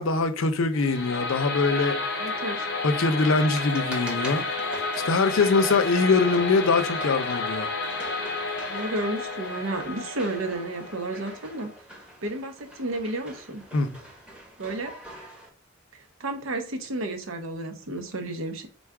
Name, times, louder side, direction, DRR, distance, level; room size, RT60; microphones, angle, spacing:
voice 1, 0.0-2.0 2.8-4.6 5.1-7.7 13.7-13.9, left 4 dB, 85° left, 0.6 m, -23 dB
sound 1, 0.7-11.8, left 3 dB, 55° left, 0.8 m, -31 dB
voice 2, 2.2-2.7 8.7-11.7 12.2-13.6 14.6-14.9 15.9-18.7, right 2 dB, 85° right, 0.8 m, -32 dB
sound 2, 2.4-15.5, equal, 5° right, 0.9 m, -44 dB
3.9 x 2.3 x 4.6 m
head